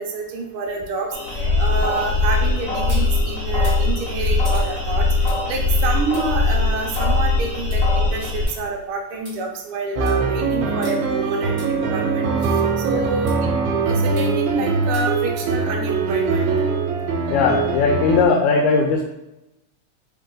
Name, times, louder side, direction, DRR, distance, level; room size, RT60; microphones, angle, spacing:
voice 1, 0.0-5.1 5.5-12.3 12.8-13.3 13.8-16.5, right 4 dB, 70° right, 1 dB, 1.3 m, -28 dB
sound 1, 0.6-3.1 3.5-8.6 8.9-9.0 9.2-9.3 9.8-10.2 10.8-10.9 11.6-11.7 12.4-12.5 13.3-13.4 14.2-14.5 14.9-15.2 15.6-15.7, right 1 dB, 25° right, 1.4 m, -43 dB
sound 2, 1.1-8.5, left 3 dB, 65° left, 0.8 m, -20 dB
sound 3, 10.0-18.3, right 4 dB, 85° right, 2.0 m, -22 dB
voice 2, 17.3-19.1, left 4 dB, 85° left, 1 dB, 2.0 m, -18 dB
4.0 x 3.4 x 3.8 m, 0.91 s
omnidirectional pair, 3.3 m